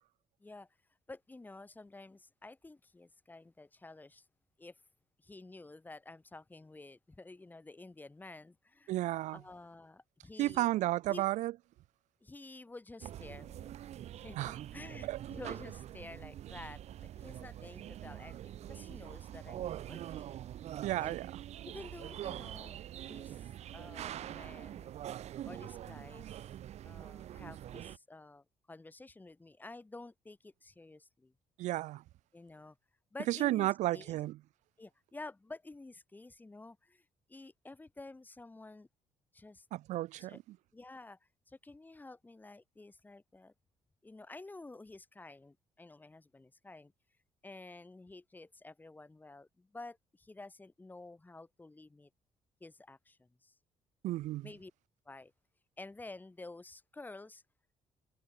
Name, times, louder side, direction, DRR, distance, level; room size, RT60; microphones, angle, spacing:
voice 1, 1.1-4.2 4.6-4.8 5.2-8.9 9.3-10.7 11.1-11.2 12.2-13.7 14.2-20.4 21.0-21.2 21.6-24.9 25.5-26.3 26.8-31.3 32.3-32.8 33.1-34.2 34.8-38.9 39.3-39.6 40.2-40.4 40.7-41.2 41.5-43.5 44.0-46.9 47.4-52.1 52.6-53.5 54.4-54.7 55.0-55.3 55.8-57.4, left 2 dB, 15° left, 5.0 m, -51 dB
voice 2, 8.9-9.4 10.4-11.5 14.4-14.6 15.1-15.2 20.8-21.3 31.6-32.0 33.3-34.4 39.7-40.4 54.0-54.5, right 16 dB, 80° right, 0.5 m, -32 dB
sound 1, 13.0-28.0, right 11 dB, 65° right, 1.5 m, -44 dB
cardioid pair, 130°, 12 cm